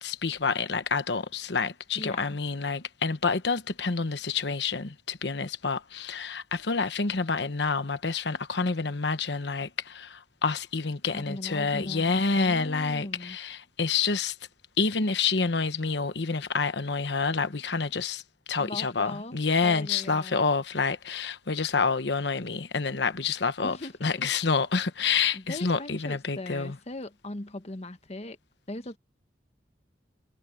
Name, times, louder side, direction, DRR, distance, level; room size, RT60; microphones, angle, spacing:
voice 1, 0.0-14.4 14.8-26.8, left 4 dB, 70° left, 1.1 m, -28 dB
voice 2, 1.9-2.4 11.0-13.4 18.6-19.3 19.6-20.4 23.6-24.1 25.3-28.4 28.7-29.0, left 1 dB, 35° left, 1.3 m, -39 dB
head